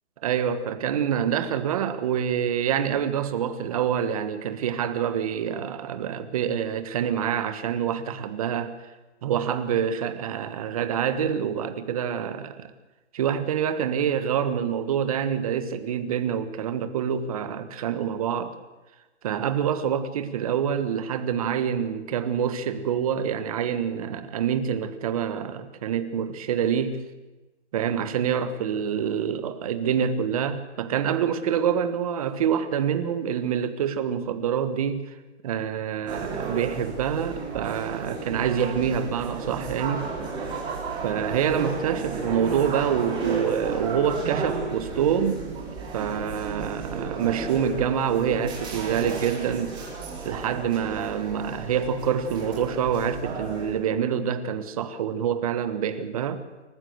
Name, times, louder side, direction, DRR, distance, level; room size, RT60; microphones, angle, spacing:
voice 1, 0.2-8.8 9.2-12.7 13.1-18.6 19.2-27.0 27.7-35.1 35.4-40.1 41.0-45.5 45.9-49.8 50.2-56.4, right 8 dB, 30° right, 1.4 m, -26 dB
sound 1, 36.1-53.8, right 4 dB, 15° right, 3.5 m, -33 dB
26.0 x 14.5 x 8.0 m
hypercardioid pair, 170°, 36 cm